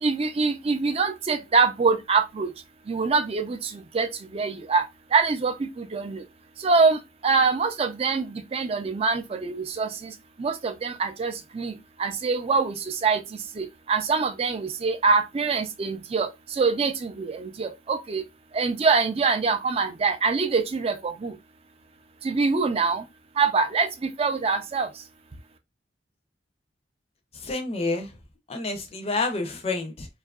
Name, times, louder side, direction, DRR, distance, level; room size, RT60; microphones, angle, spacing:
voice 1, 0.0-2.5 2.9-4.8 5.1-6.2 6.6-18.2 18.5-21.3 22.2-23.0 23.4-24.9, right 4 dB, 35° right, 0.4 m, -25 dB
voice 2, 27.4-28.1 28.5-30.1, left 3 dB, 35° left, 0.5 m, -28 dB
2.7 x 2.4 x 2.3 m
head